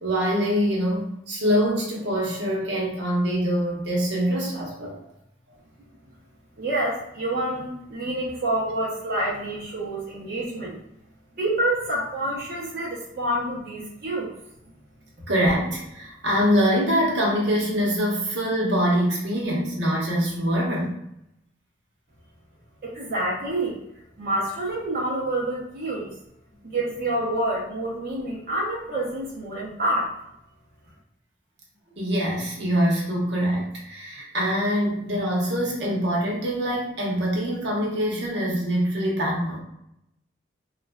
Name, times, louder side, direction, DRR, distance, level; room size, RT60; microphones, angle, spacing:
voice 1, 0.0-5.1 15.3-21.0 31.9-39.6, equal, 80° right, -3 dB, 0.9 m, -24 dB
voice 2, 6.6-10.8 11.4-14.3 22.8-23.8 24.2-26.1 26.6-30.1, right 1 dB, 55° right, -7 dB, 0.7 m, -27 dB
3.2 x 2.4 x 2.2 m, 0.81 s
head